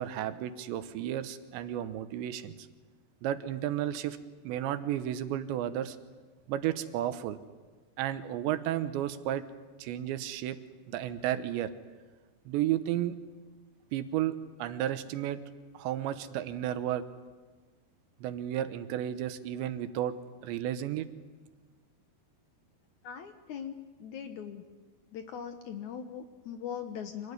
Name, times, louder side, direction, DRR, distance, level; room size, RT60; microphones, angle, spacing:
voice 1, 0.0-2.5 3.2-4.2 4.4-6.0 6.5-7.4 8.0-9.4 9.8-10.6 10.9-11.7 12.5-13.2 13.9-14.3 14.6-15.4 15.7-17.0 18.2-20.1 20.4-21.1, right 12 dB, 80° right, 11 dB, 3.3 m, -32 dB
voice 2, 23.0-24.6 25.1-27.3, left 8 dB, 80° left, 7 dB, 1.7 m, -40 dB
26.0 x 18.5 x 9.7 m, 1.4 s
omnidirectional pair, 5.1 m